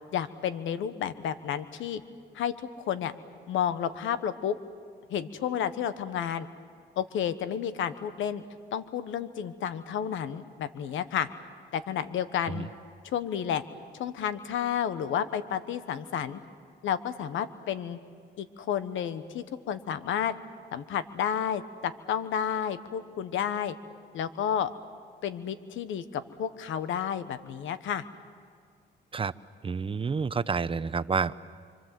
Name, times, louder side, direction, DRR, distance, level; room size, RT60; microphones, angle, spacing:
voice 1, 0.1-2.0 2.3-2.5 2.9-3.1 3.5-4.6 5.1-6.5 7.0-8.4 8.7-11.3 11.7-12.7 13.1-13.6 14.0-16.4 16.8-18.0 18.4-20.4 20.7-23.8 24.1-24.7 25.2-28.0, left 9 dB, 80° left, 12 dB, 1.2 m, -31 dB
voice 2, 29.6-31.3, right 5 dB, 25° right, 15 dB, 0.7 m, -29 dB
26.5 x 25.5 x 7.7 m, 2.2 s
cardioid pair, 90°, 20 cm